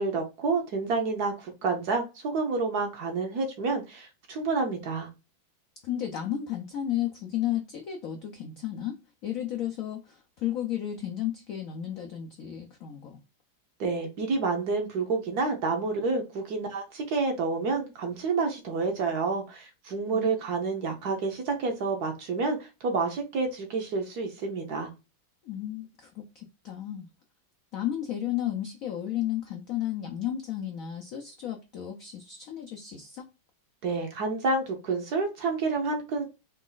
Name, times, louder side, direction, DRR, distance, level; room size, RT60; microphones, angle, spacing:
voice 1, 0.0-5.1 13.8-24.9 33.8-36.2, right 4 dB, 65° right, 1.1 m, -29 dB
voice 2, 5.8-13.2 20.1-20.3 25.4-27.1 27.7-33.3, left 11 dB, 80° left, 0.7 m, -33 dB
4.1 x 2.4 x 3.8 m
omnidirectional pair, 2.2 m